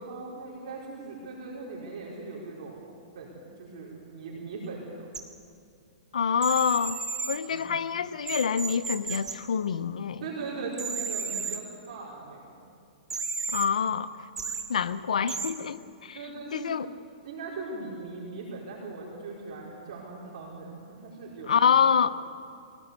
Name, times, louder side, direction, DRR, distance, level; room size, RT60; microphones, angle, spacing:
voice 1, 0.0-2.9 3.1-5.1 7.5-7.8 10.2-12.6 14.9-15.0 16.1-16.8 17.2-21.9, right 3 dB, 60° right, -4 dB, 4.8 m, -40 dB
sound 1, 5.1-5.2 6.4-7.4 8.3-9.3 10.7-11.6 13.1-13.7 14.4-14.6 15.3-15.5, right 5 dB, 10° right, 1.7 m, -32 dB
voice 2, 6.1-7.0 7.3-10.2 13.5-14.3 14.7-16.2 16.5-16.9 21.5-22.1, left 7 dB, 90° left, 13 dB, 0.8 m, -26 dB
22.0 x 17.5 x 8.3 m, 2.4 s
hypercardioid pair, 145°, 4 cm